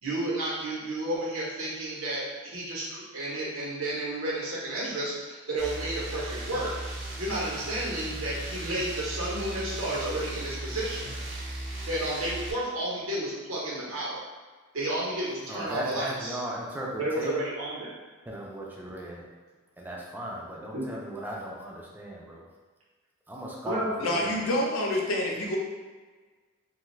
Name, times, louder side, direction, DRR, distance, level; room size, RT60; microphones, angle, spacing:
voice 1, 0.0-11.2 11.9-14.2 14.7-16.4 17.0-17.9 20.7-20.8 23.6-24.1, right 1 dB, 85° right, -6 dB, 0.9 m, -32 dB
sound 1, 5.6-12.5, right 1 dB, 60° right, 0.5 m, -37 dB
voice 2, 15.4-17.3 18.3-19.2 19.8-22.4 23.3-24.3, right 1 dB, 10° right, -3 dB, 0.4 m, -37 dB
voice 3, 24.0-25.6, left 1 dB, 70° left, -1 dB, 0.6 m, -27 dB
2.5 x 2.4 x 3.1 m, 1.4 s
head